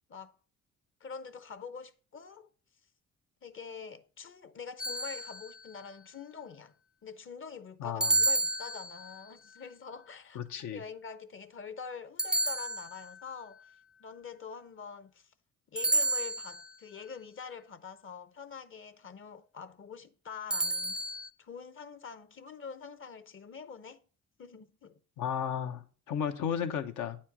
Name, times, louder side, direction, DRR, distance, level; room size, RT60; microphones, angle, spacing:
voice 1, 1.0-2.5 3.4-6.7 7.0-10.4 10.7-13.6 14.0-15.3 15.7-21.0 21.4-24.0 24.4-25.0, left 6 dB, 45° left, 0.7 m, -45 dB
sound 1, 4.8-5.7 8.0-9.3 12.2-13.2 15.8-16.7 20.5-21.3, right 2 dB, 5° right, 0.5 m, -31 dB
voice 2, 7.8-8.1 10.3-10.8 25.2-27.2, left 8 dB, 80° left, 1.0 m, -34 dB
8.8 x 4.3 x 6.1 m
cardioid pair, 90°, 30 cm